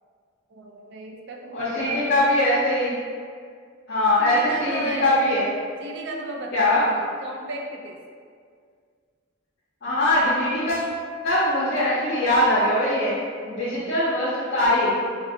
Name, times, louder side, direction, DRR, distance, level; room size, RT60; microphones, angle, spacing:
voice 1, 0.5-2.0 4.2-5.2 5.8-8.0, right 2 dB, 60° right, 2 dB, 0.4 m, -35 dB
voice 2, 1.5-2.9 3.9-5.5 6.5-6.9 9.8-10.9 11.2-13.1 13.5-14.9, left 1 dB, 55° left, -9 dB, 0.6 m, -21 dB
3.2 x 2.5 x 2.6 m, 2.1 s
head